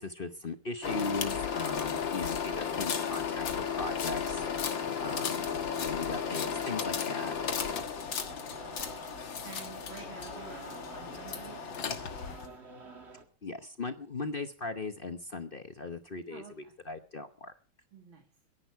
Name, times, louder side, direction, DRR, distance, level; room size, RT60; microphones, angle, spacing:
voice 1, 0.0-5.5 5.7-7.4 13.4-17.5, left 3 dB, 40° left, 9 dB, 0.7 m, -38 dB
sound 1, 0.8-12.5, left 7 dB, 70° left, 2.3 m, -34 dB
sound 2, 4.3-13.2, right 2 dB, 35° right, 2.3 m, -49 dB
voice 2, 8.1-8.9 9.4-12.3 16.3-16.7 17.9-18.3, right 5 dB, 80° right, 2 dB, 3.1 m, -50 dB
23.0 x 11.0 x 4.7 m, 0.41 s
omnidirectional pair, 2.2 m